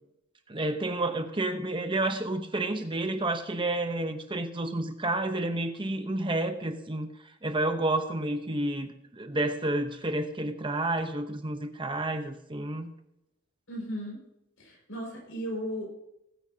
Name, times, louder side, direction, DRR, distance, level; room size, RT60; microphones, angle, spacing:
voice 1, 0.5-7.1 7.4-12.9, right 2 dB, 25° right, 6 dB, 0.9 m, -30 dB
voice 2, 13.7-14.2 14.6-15.8, equal, 70° left, -1 dB, 5.5 m, -35 dB
20.5 x 8.8 x 2.8 m, 0.86 s
head